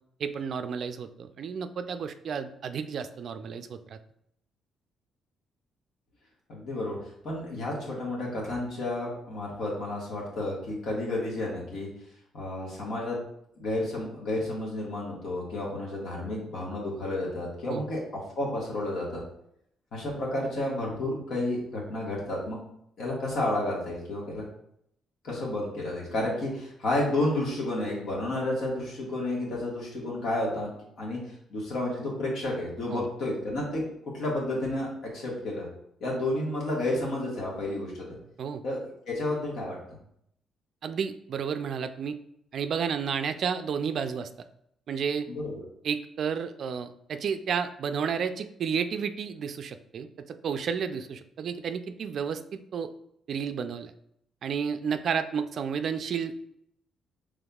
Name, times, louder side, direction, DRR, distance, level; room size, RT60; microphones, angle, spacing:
voice 1, 0.2-4.0 17.7-17.8 32.9-33.1 38.4-38.6 40.8-42.2 42.5-44.3 44.9-45.3 45.8-52.9 53.3-53.9 54.4-56.4, right 6 dB, 60° right, 9 dB, 0.3 m, -31 dB
voice 2, 6.5-7.0 7.2-11.9 12.3-13.2 13.6-18.0 18.3-19.2 19.9-22.6 23.0-24.4 25.2-30.7 31.0-31.2 31.5-33.8 34.1-35.7 36.0-38.2 38.6-38.8 39.1-39.8 45.3-45.6, left 1 dB, 70° left, -3 dB, 1.6 m, -31 dB
5.2 x 3.4 x 2.3 m, 0.73 s
cardioid pair, 90°, 0 cm